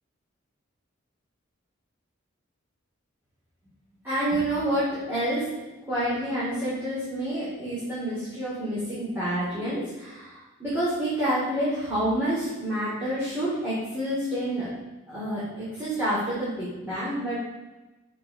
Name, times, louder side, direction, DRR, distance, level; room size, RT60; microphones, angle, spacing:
voice 1, 4.0-5.5 5.9-14.7 15.1-17.4, right 1 dB, 10° right, -13 dB, 4.1 m, -28 dB
7.6 x 6.2 x 7.4 m, 1.1 s
head